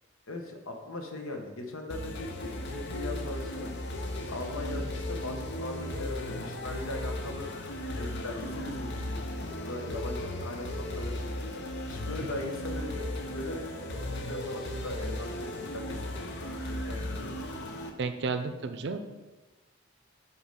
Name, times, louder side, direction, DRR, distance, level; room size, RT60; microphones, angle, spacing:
voice 1, 0.3-7.5 8.0-17.6, left 2 dB, 85° left, 3 dB, 1.0 m, -40 dB
sound 1, 1.9-17.9, left 1 dB, 55° left, 0.7 m, -36 dB
voice 2, 18.0-19.0, right 4 dB, 60° right, 9 dB, 0.5 m, -32 dB
5.2 x 4.7 x 5.2 m, 1.2 s
head